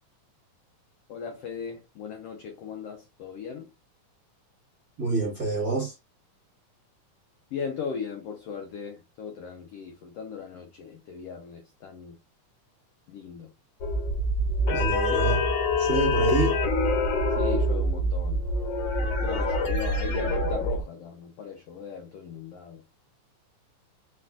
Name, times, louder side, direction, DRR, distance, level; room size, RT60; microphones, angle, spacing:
voice 1, 1.1-3.7 7.5-12.2 13.1-13.5 17.4-18.4 19.2-23.0, left 6 dB, 80° left, 1.4 m, -37 dB
voice 2, 5.0-5.9 14.7-15.5 15.8-16.6, right 3 dB, 45° right, 1.3 m, -27 dB
sound 1, 13.8-20.8, left 1 dB, 60° left, 1.8 m, -25 dB
4.7 x 4.3 x 2.4 m
omnidirectional pair, 3.8 m